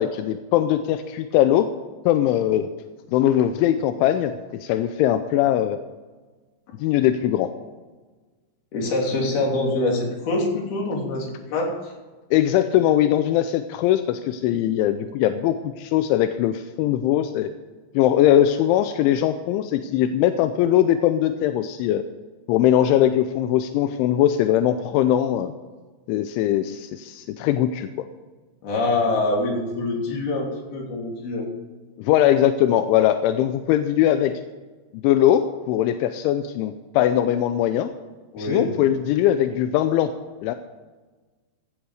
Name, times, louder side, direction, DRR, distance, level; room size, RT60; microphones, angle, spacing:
voice 1, 0.0-1.7 2.0-2.7 3.1-5.8 6.8-7.5 12.3-17.5 17.9-22.0 22.5-25.5 26.1-28.1 32.0-34.3 35.0-37.9 38.4-40.1 40.4-40.6, left 11 dB, 85° left, 9 dB, 3.1 m, -20 dB
voice 2, 8.7-11.9 28.6-31.5 38.3-38.7, left 2 dB, 55° left, -1 dB, 4.8 m, -25 dB
16.0 x 10.0 x 4.9 m, 1.3 s
omnidirectional pair, 5.4 m